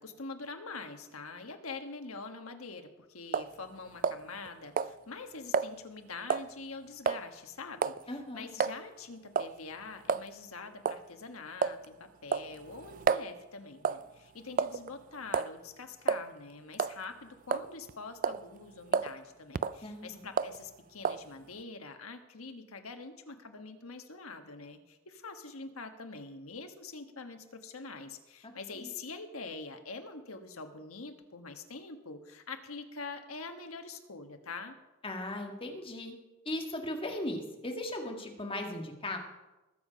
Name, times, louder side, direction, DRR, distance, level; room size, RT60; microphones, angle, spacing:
voice 1, 0.0-34.8, left 4 dB, 90° left, 6 dB, 1.4 m, -45 dB
sound 1, 3.3-3.5 4.0-4.5 4.8-4.9 5.5-5.7 6.3-6.5 7.1-7.2 7.8-8.0 8.6-8.8 9.4-9.6 10.1-10.3 10.8-11.0 11.6-11.8 12.3-13.3 13.8-14.1 14.6-14.9 15.3-15.5 16.1-16.2 16.7-17.0 17.5-17.9 18.2-18.4 18.9-19.1 19.5-19.8 20.4-20.6 21.0-21.2, right 6 dB, 40° right, 0.3 m, -30 dB
voice 2, 8.1-8.5 19.8-20.2 28.7-28.9 35.0-36.1 36.4-39.2, left 1 dB, 25° left, 3 dB, 1.8 m, -37 dB
20.0 x 7.6 x 5.1 m, 1.1 s
head